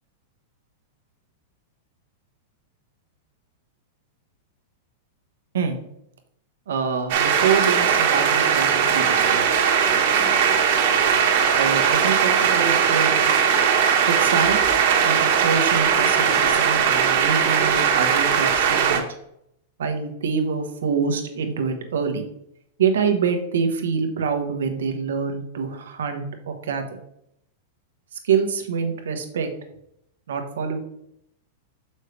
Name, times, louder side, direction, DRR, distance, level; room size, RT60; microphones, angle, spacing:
voice 1, 6.7-9.5 11.6-13.3 14.1-14.6 15.0-19.0 19.8-22.2 22.8-27.0 28.2-29.5 30.3-30.8, right 6 dB, 80° right, 6 dB, 1.1 m, -25 dB
sound 1, 7.1-19.0, right 7 dB, 60° right, 1.4 m, -19 dB
6.5 x 5.4 x 3.3 m, 0.76 s
hypercardioid pair, 115°, 0 cm